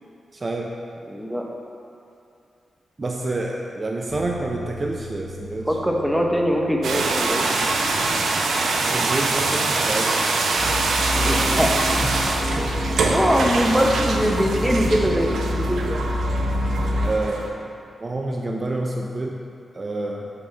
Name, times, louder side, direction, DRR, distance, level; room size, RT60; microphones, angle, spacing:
voice 1, 0.3-0.7 3.0-5.7 8.8-10.1 12.0-13.3 17.0-17.5 18.0-19.4 19.7-20.3, right 2 dB, 35° right, 1 dB, 0.5 m, -28 dB
voice 2, 1.1-1.4 5.7-7.6 11.1-11.9 13.0-16.2, equal, 5° right, 0 dB, 0.8 m, -22 dB
sound 1, 4.1-13.8, left 2 dB, 85° left, 1.3 m, -44 dB
sound 2, 6.8-17.5, right 3 dB, 85° right, 0.6 m, -24 dB
sound 3, 10.6-17.1, left 1 dB, 40° left, 0.9 m, -27 dB
7.4 x 5.6 x 3.3 m, 2.5 s
cardioid pair, 80°, 0 cm